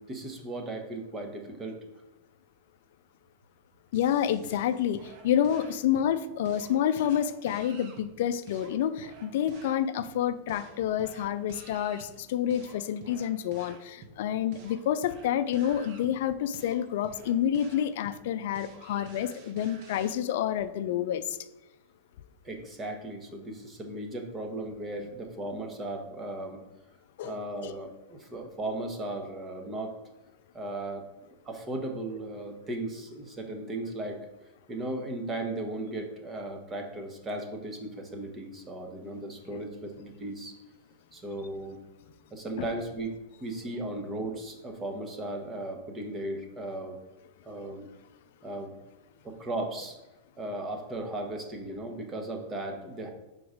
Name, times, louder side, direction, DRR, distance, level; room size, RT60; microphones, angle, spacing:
voice 1, 0.0-1.8 22.4-26.6 27.2-29.9 30.5-31.0 31.4-34.3 34.7-40.5 41.1-41.8 42.3-43.1 43.4-47.0 47.4-47.9 48.4-48.7 49.2-50.0 50.4-53.1, right 1 dB, 20° right, 3 dB, 1.1 m, -36 dB
voice 2, 3.9-21.4 27.2-27.4 27.6-27.7 42.6-42.7, left 10 dB, 65° left, 11 dB, 0.4 m, -28 dB
sound 1, 3.9-20.2, right 4 dB, 50° right, 1.0 m, -51 dB
4.7 x 4.0 x 5.0 m, 1.0 s
hypercardioid pair, 125°, 0 cm